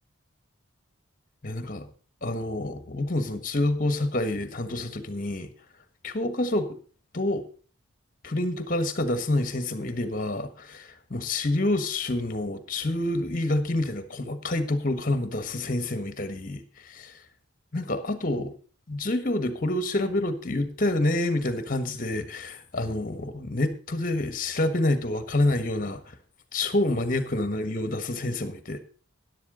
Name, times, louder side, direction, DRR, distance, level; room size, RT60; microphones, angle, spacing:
voice 1, 1.4-1.9 2.2-5.5 6.0-6.7 7.1-7.4 8.2-17.2 17.7-18.5 18.9-26.1 26.5-28.8, left 2 dB, 40° left, 1.4 m, -28 dB
13.0 x 11.0 x 3.9 m
head